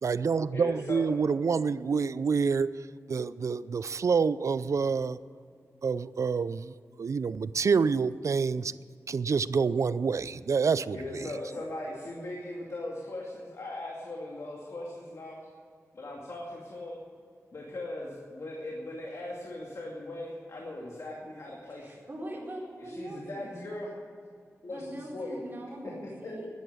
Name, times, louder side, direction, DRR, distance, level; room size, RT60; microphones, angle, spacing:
voice 1, 0.0-2.7 3.1-5.2 5.8-8.7 9.1-11.3, right 5 dB, 60° right, 17 dB, 0.5 m, -27 dB
voice 2, 0.5-1.0 10.9-15.4 15.9-17.0 17.5-22.0 22.8-23.9 24.6-24.8 25.1-25.4 25.8-25.9 26.2-26.5, left 1 dB, 60° left, -2 dB, 2.4 m, -39 dB
voice 3, 10.3-11.3 21.7-23.7 24.6-26.5, right 1 dB, 35° right, -4 dB, 4.7 m, -43 dB
11.0 x 10.5 x 9.7 m, 2.1 s
wide cardioid pair, 80°, 6 cm